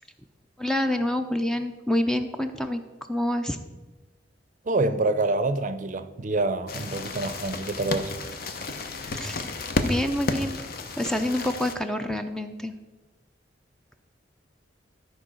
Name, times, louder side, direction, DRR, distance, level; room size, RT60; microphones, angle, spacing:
voice 1, 0.6-2.8 3.1-3.6 9.1-9.4 9.8-10.6 10.9-12.7, left 1 dB, 5° left, 7 dB, 0.4 m, -27 dB
voice 2, 4.7-8.1, right 2 dB, 45° right, 11 dB, 0.6 m, -26 dB
sound 1, 6.7-11.7, left 2 dB, 55° left, 0.8 m, -32 dB
13.0 x 4.5 x 6.3 m, 1.2 s
head